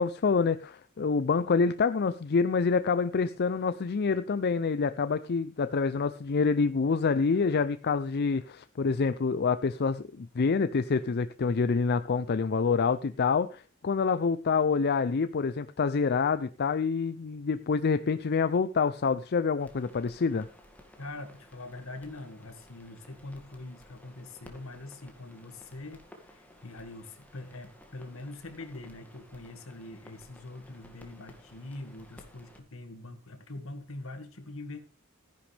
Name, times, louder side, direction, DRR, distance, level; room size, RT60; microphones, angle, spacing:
voice 1, 0.0-20.5, left 5 dB, 50° left, 12 dB, 0.5 m, -27 dB
sound 1, 19.6-32.6, equal, 10° left, 2.0 m, -55 dB
voice 2, 21.0-34.8, left 2 dB, 70° left, 7 dB, 2.0 m, -43 dB
14.5 x 10.5 x 3.4 m, 0.36 s
head